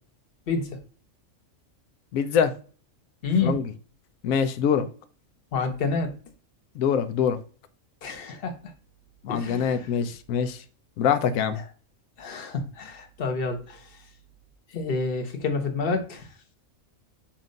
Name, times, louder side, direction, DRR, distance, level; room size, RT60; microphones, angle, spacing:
voice 1, 0.5-0.8 3.2-3.6 5.5-6.1 8.0-8.6 9.3-9.9 11.5-11.7 12.2-14.0 14.7-16.3, left 4 dB, 45° left, 1.2 m, -28 dB
voice 2, 2.1-2.5 3.4-3.6 4.2-4.9 6.8-7.4 9.2-10.6 11.0-11.6, left 7 dB, 85° left, 1.1 m, -24 dB
7.3 x 2.5 x 5.2 m
omnidirectional pair, 1.4 m